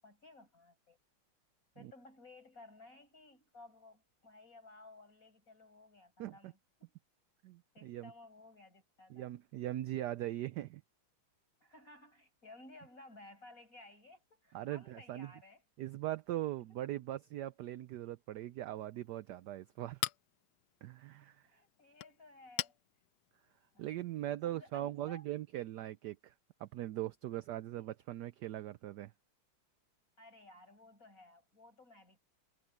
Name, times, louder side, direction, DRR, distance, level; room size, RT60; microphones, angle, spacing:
voice 1, 0.0-1.0 1.7-6.9 7.7-9.3 11.6-15.6 21.4-22.7 23.7-23.8 24.4-25.3 27.8-27.9 30.2-32.2, left 2 dB, 40° left, 8.0 m, -57 dB
voice 2, 6.2-6.5 7.4-8.1 9.1-10.8 14.5-15.3 15.8-20.0 20.8-21.4 23.8-26.3 26.6-29.1, right 14 dB, 80° right, 0.9 m, -40 dB
Chink clink, 18.7-24.3, left 13 dB, 80° left, 0.8 m, -45 dB
omnidirectional pair, 2.3 m